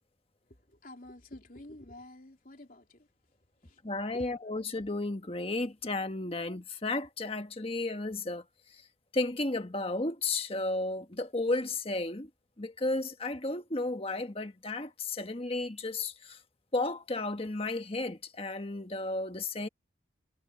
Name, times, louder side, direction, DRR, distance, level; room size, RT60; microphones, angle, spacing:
voice 1, 0.7-3.1 3.6-3.8 4.1-4.5, left 1 dB, 50° left, 3.6 m, -49 dB
voice 2, 3.8-8.4 9.1-12.3 12.6-16.4 16.7-19.7, left 2 dB, 30° left, 1.4 m, -33 dB
head